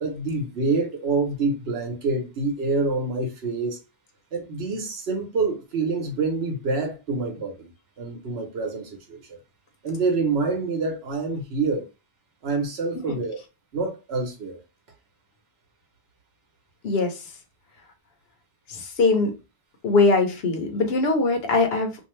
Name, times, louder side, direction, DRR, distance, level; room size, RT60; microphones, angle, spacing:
voice 1, 0.0-3.8 4.3-7.7 8.0-9.4 9.8-11.8 12.4-13.4 13.7-14.6, right 3 dB, 75° right, 1.1 m, -26 dB
voice 2, 16.8-17.2 18.7-19.3 19.8-22.1, left 3 dB, 70° left, 1.0 m, -21 dB
2.7 x 2.5 x 3.1 m
omnidirectional pair, 1.1 m